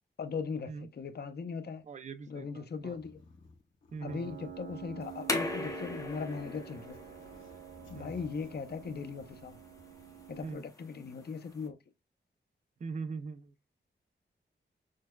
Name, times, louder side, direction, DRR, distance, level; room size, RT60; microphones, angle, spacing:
voice 1, 0.2-1.8 2.3-3.2 4.0-7.0 7.9-9.6 10.3-11.8, left 5 dB, 60° left, 0.5 m, -39 dB
voice 2, 1.8-3.0 3.9-4.4 7.9-8.1 10.4-10.6 12.8-13.5, right 4 dB, 40° right, 0.4 m, -41 dB
sound 1, 2.7-4.5 4.8-8.5, left 3 dB, 85° left, 1.1 m, -57 dB
Piano, 4.1-10.5, right 9 dB, 80° right, 0.9 m, -48 dB
sound 2, 5.0-11.7, left 2 dB, 15° left, 0.8 m, -41 dB
6.2 x 2.1 x 2.2 m
wide cardioid pair, 110°, 19 cm